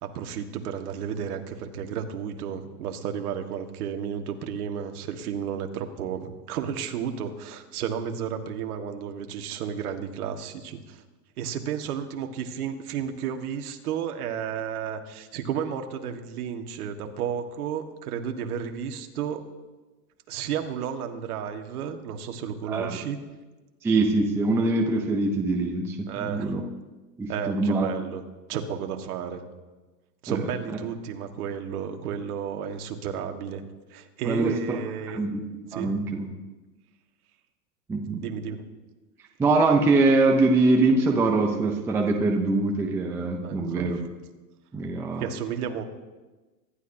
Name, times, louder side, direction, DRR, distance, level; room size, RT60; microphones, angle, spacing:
voice 1, 0.0-11.0 11.4-19.4 20.3-23.2 26.1-26.6 27.3-28.2 28.5-29.4 30.2-33.6 33.9-35.2 35.7-36.0 38.2-38.6 43.4-43.9 45.2-45.8, right 8 dB, 65° right, 5 dB, 1.7 m, -32 dB
voice 2, 22.7-23.0 23.8-26.6 27.2-27.9 30.3-30.4 34.3-34.6 35.1-35.4 35.7-36.3 37.9-38.2 39.4-44.0 44.7-45.3, right 3 dB, 5° right, 2 dB, 0.5 m, -23 dB
25.0 x 11.5 x 2.7 m, 1.2 s
hypercardioid pair, 135°, 49 cm